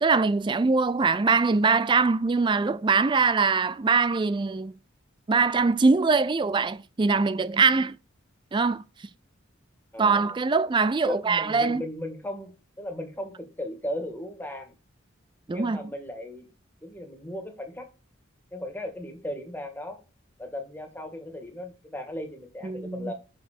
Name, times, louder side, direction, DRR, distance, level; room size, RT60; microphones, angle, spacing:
voice 1, 0.0-4.7 5.3-8.0 8.5-8.8 10.0-11.8 15.5-15.8 22.6-23.1, right 4 dB, 25° right, 0.4 m, -23 dB
voice 2, 9.9-10.4 11.1-14.7 15.5-16.5 16.8-17.9 18.5-20.0 20.4-23.1, left 1 dB, 10° left, 1.7 m, -36 dB
6.3 x 5.6 x 6.5 m
head